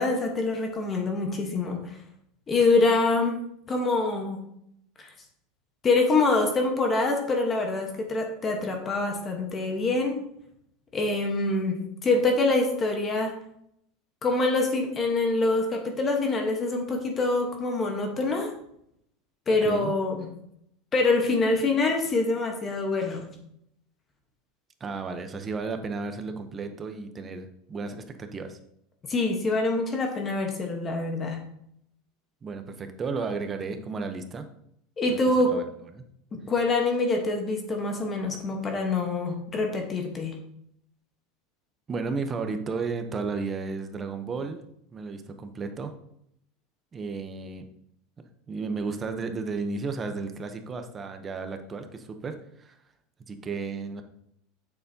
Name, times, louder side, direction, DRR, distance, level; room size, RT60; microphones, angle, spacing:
voice 1, 0.0-2.0 2.5-3.4 3.7-4.4 5.0-5.1 5.8-10.2 10.9-13.3 14.2-18.5 19.5-20.3 20.9-23.3 29.1-31.4 35.0-35.5 36.3-40.3, left 3 dB, 20° left, 3 dB, 1.2 m, -25 dB
voice 2, 19.6-19.9 24.8-28.6 32.4-34.5 35.1-35.6 35.9-36.0 41.9-44.6 44.9-45.9 46.9-47.7 48.5-52.8 53.3-54.0, right 4 dB, 20° right, 7 dB, 0.8 m, -33 dB
8.7 x 7.0 x 2.8 m, 0.74 s
supercardioid pair, 155°, 0 cm